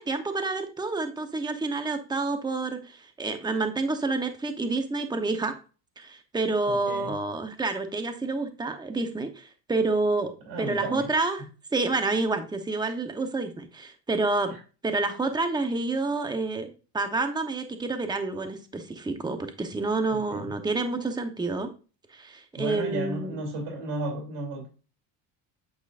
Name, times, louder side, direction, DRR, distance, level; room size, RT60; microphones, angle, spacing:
voice 1, 0.0-5.5 6.0-10.3 10.6-11.4 11.7-14.5 14.8-16.7 16.9-21.7 22.1-23.4, right 3 dB, 10° right, 7 dB, 0.8 m, -28 dB
voice 2, 6.7-7.2 10.4-11.1 14.5-14.6 20.1-20.5 22.6-24.7, right 2 dB, 80° right, 1 dB, 2.9 m, -34 dB
8.7 x 4.8 x 2.5 m, 0.35 s
cardioid pair, 110°, 46 cm